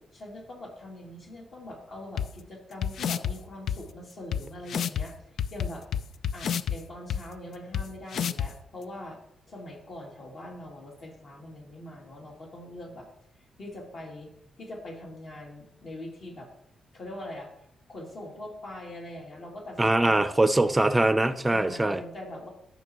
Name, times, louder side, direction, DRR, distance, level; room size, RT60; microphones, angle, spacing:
voice 1, 0.1-5.1 5.5-5.8 6.3-9.2 9.5-13.1 13.6-14.3 14.6-16.5 16.9-17.5 17.9-20.3 21.5-22.5, left 1 dB, 50° left, -1 dB, 2.6 m, -42 dB
sound 1, 2.2-2.3 2.8-3.3 3.7-3.8 4.3-4.4 4.7-5.0 5.4-6.8 7.1-7.2 7.7-7.8 8.1-8.5, left 8 dB, 70° left, 0.3 m, -28 dB
voice 2, 19.8-22.0, right 2 dB, 15° right, 11 dB, 0.6 m, -22 dB
13.0 x 6.0 x 3.0 m, 0.73 s
cardioid pair, 110°, 0 cm